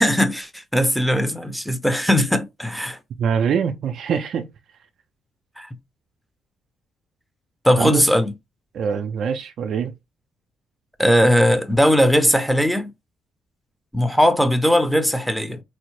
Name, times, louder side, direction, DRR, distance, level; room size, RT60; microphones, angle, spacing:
voice 1, 0.0-3.0 5.6-5.7 7.6-8.3 11.0-12.9 13.9-15.6, equal, ahead, 0.7 m, -19 dB
voice 2, 3.2-4.5 7.8-8.0 8.7-9.9, right 7 dB, 65° right, 0.4 m, -23 dB
4.3 x 2.0 x 3.1 m
cardioid pair, 90°, 0 cm